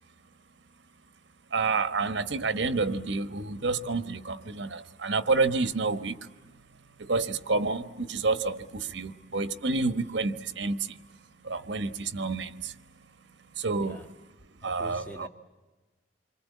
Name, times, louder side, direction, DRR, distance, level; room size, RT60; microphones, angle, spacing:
voice 1, 1.5-6.3 7.0-11.0 11.4-12.7 13.5-14.0 14.6-15.3, right 3 dB, 85° right, 1.2 m, -29 dB
voice 2, 14.6-15.3, equal, 10° left, 1.5 m, -44 dB
27.5 x 24.5 x 8.3 m
head